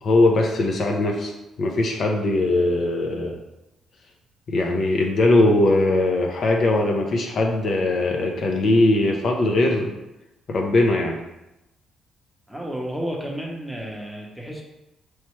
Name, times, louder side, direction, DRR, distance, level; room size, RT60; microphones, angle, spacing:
voice 1, 0.0-1.3 1.6-3.3 4.5-10.0 10.5-11.2, left 2 dB, 55° left, 1 dB, 0.6 m, -20 dB
voice 2, 12.5-14.6, equal, ahead, -1 dB, 0.8 m, -31 dB
4.3 x 3.1 x 3.1 m, 0.92 s
cardioid pair, 110°, 0 cm